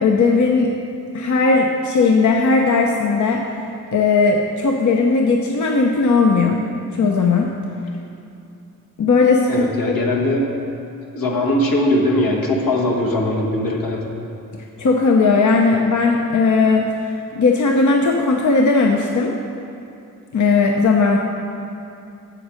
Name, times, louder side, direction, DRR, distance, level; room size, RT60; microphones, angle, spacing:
voice 1, 0.0-0.7 1.1-3.4 3.9-6.6 6.9-7.5 9.0-10.0 14.8-19.3 20.3-21.2, left 4 dB, 60° left, 1 dB, 0.7 m, -17 dB
voice 2, 9.5-10.5 11.1-14.0, left 1 dB, 85° left, -1 dB, 1.4 m, -20 dB
7.7 x 7.4 x 5.1 m, 2.7 s
cardioid pair, 50°, 34 cm